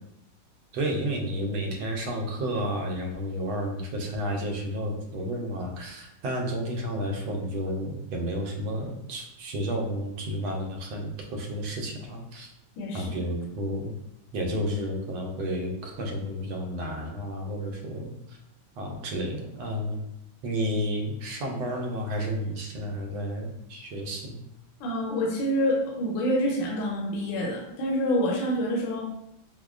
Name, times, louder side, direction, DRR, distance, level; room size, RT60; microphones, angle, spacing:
voice 1, 0.7-12.5 12.9-13.9 14.3-18.1 18.8-20.0 20.4-24.4, equal, 80° right, 1 dB, 1.4 m, -31 dB
voice 2, 12.8-13.1 24.8-29.0, equal, 75° left, -1 dB, 1.4 m, -27 dB
5.1 x 2.1 x 2.4 m, 0.82 s
omnidirectional pair, 2.2 m